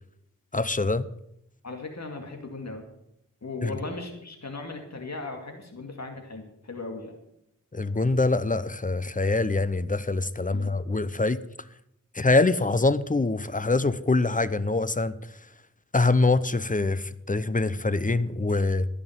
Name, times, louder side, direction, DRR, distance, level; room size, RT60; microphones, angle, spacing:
voice 1, 0.5-1.1 3.6-3.7 7.7-11.4 12.1-15.1 15.9-18.9, left 3 dB, 25° left, 15 dB, 0.7 m, -24 dB
voice 2, 1.6-2.8 3.4-7.2 10.5-10.7, left 3 dB, 55° left, 3 dB, 2.3 m, -37 dB
14.5 x 6.2 x 7.8 m, 0.79 s
wide cardioid pair, 60°, 32 cm